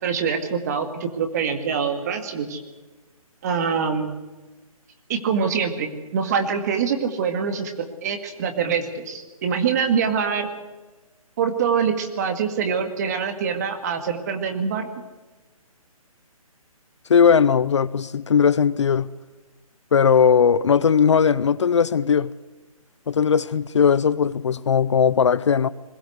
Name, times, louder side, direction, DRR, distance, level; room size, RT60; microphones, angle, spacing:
voice 1, 0.0-2.6 3.4-4.1 5.1-7.7 8.0-10.5 11.4-14.9, right 6 dB, 30° right, 2.1 m, -24 dB
voice 2, 17.1-19.1 19.9-22.3 23.1-25.7, left 7 dB, 50° left, 0.7 m, -18 dB
21.5 x 16.0 x 8.2 m
hypercardioid pair, 165°, 19 cm